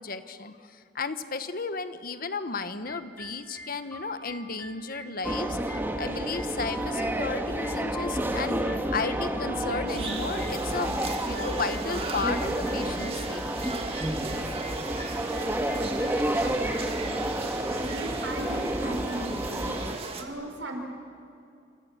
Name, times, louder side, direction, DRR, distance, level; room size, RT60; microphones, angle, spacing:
voice 1, 0.0-8.6 8.9-13.8, left 4 dB, 50° left, 10 dB, 1.2 m, -34 dB
sound 1, 2.7-16.8, equal, 10° left, 3.1 m, -45 dB
sound 2, 5.2-19.9, right 1 dB, 10° right, 1.7 m, -30 dB
sound 3, 9.9-20.2, right 3 dB, 30° right, 2.3 m, -38 dB
voice 2, 17.8-19.7 20.2-20.8, right 1 dB, 80° right, 4 dB, 4.9 m, -36 dB
28.0 x 27.5 x 7.4 m, 2.5 s
head